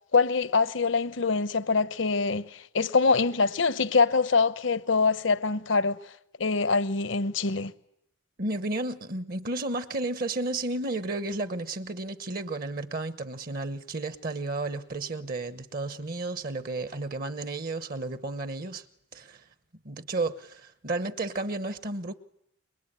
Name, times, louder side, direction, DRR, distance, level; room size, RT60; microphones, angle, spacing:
voice 1, 0.1-6.0 6.4-7.7, left 4 dB, 70° left, 1.0 m, -24 dB
voice 2, 8.4-18.9 19.1-19.4 19.8-22.1, right 2 dB, 45° right, 1.1 m, -32 dB
27.5 x 23.0 x 8.8 m
head